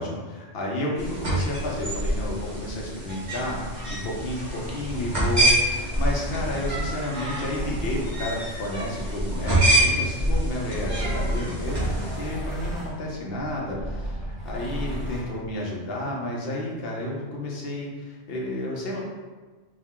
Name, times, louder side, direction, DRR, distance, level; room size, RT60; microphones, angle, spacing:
voice 1, 0.0-19.0, left 1 dB, 55° left, -2 dB, 1.0 m, -31 dB
sound 1, 1.0-12.3, right 1 dB, 35° right, 1.6 m, -26 dB
sound 2, 1.4-10.2 10.7-15.5, equal, ahead, 0.6 m, -35 dB
4.4 x 2.6 x 3.6 m, 1.3 s
omnidirectional pair, 1.3 m